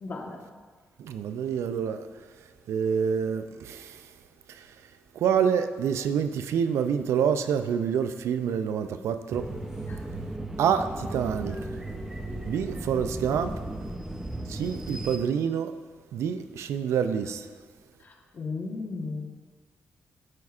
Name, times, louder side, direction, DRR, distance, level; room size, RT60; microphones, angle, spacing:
voice 1, 0.0-0.4 9.9-10.0 18.0-19.2, left 3 dB, 45° left, 1.1 m, -35 dB
voice 2, 1.0-2.1 2.7-4.1 4.5-4.8 5.1-9.5 10.6-11.7 12.5-13.5 14.5-15.7 16.1-17.5, right 7 dB, 90° right, 0.4 m, -27 dB
sound 1, 9.3-15.2, right 1 dB, 10° right, 0.6 m, -36 dB
12.0 x 4.8 x 2.4 m
cardioid pair, 110°, 5 cm